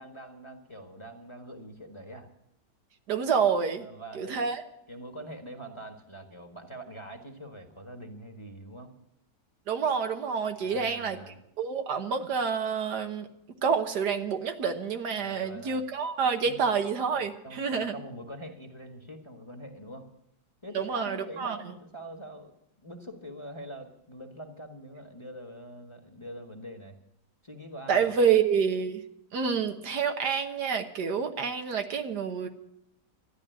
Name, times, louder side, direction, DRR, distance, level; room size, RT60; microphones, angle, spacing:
voice 1, 0.0-2.3 3.8-4.5 4.9-8.9 10.6-11.4 15.2-15.8 16.4-17.1 17.4-20.1 20.6-27.0 27.4-28.3, right 1 dB, 20° left, 4 dB, 1.4 m, -44 dB
voice 2, 3.1-3.9 4.2-4.6 9.7-11.2 11.6-13.3 13.6-17.9 20.7-21.6 27.9-29.0 29.3-32.5, right 6 dB, 75° right, 6 dB, 1.7 m, -28 dB
13.0 x 10.5 x 9.1 m, 0.79 s
omnidirectional pair, 1.8 m